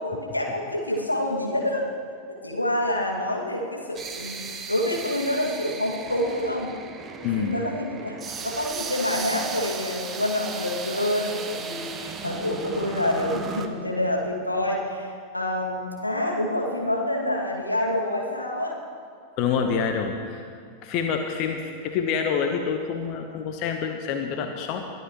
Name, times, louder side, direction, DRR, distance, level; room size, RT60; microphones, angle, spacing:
voice 1, 0.0-1.9 2.4-6.7 7.4-18.8 21.4-21.5, left 1 dB, 85° left, -2 dB, 2.2 m, -27 dB
sound 1, 3.1-13.7, right 5 dB, 20° right, 1.0 m, -36 dB
voice 2, 7.2-7.5 19.4-20.5 20.8-24.9, left 6 dB, 40° left, 5 dB, 1.0 m, -27 dB
22.5 x 12.5 x 3.1 m, 2.3 s
figure-of-eight pair, 90°, 0 cm